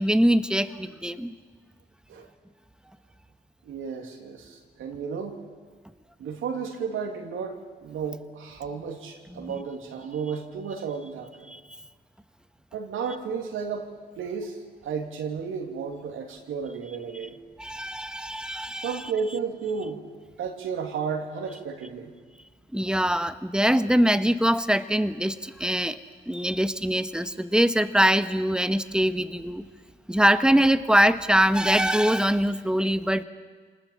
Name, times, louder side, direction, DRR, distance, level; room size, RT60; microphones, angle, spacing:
voice 1, 0.0-1.3 9.3-9.6 11.5-11.6 17.6-19.0 22.7-26.0 26.3-29.6 30.1-33.2, equal, 5° right, 11 dB, 1.3 m, -23 dB
voice 2, 3.6-5.4 6.2-11.5 12.7-13.9 14.2-14.6 14.8-17.4 18.8-20.0 20.4-22.1, right 6 dB, 75° right, 2 dB, 2.7 m, -33 dB
26.0 x 19.5 x 7.4 m, 1.5 s
hypercardioid pair, 50°, 21 cm